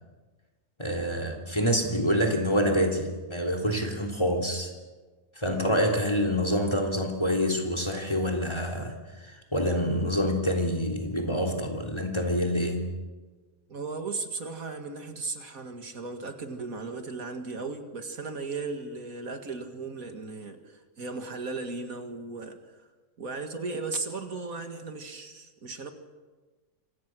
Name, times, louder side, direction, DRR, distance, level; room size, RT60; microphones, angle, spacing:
voice 1, 0.8-4.7 5.4-9.0 9.2-12.9, equal, 20° left, 4 dB, 3.6 m, -27 dB
voice 2, 5.4-5.8 13.7-22.9 23.2-25.9, right 3 dB, 70° right, 6 dB, 2.5 m, -36 dB
26.5 x 26.0 x 6.3 m, 1.3 s
omnidirectional pair, 1.5 m